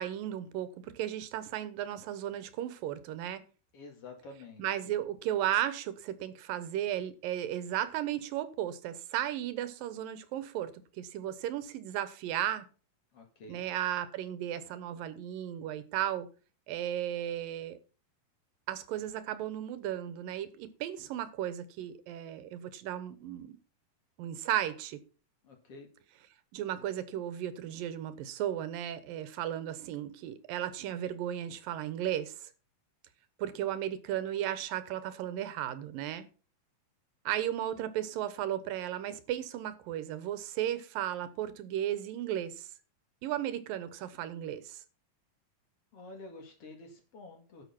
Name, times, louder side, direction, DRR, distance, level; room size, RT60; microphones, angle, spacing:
voice 1, 0.0-3.4 4.6-12.7 13.5-16.3 16.7-17.8 18.7-23.5 24.2-25.0 26.5-32.5 33.4-36.3 37.3-42.7 43.2-44.8, right 11 dB, 85° right, 2.8 m, -35 dB
voice 2, 3.7-4.7 13.1-13.6 25.4-25.9 45.9-47.6, left 2 dB, 45° left, 2.9 m, -49 dB
11.0 x 6.8 x 5.8 m
omnidirectional pair, 3.9 m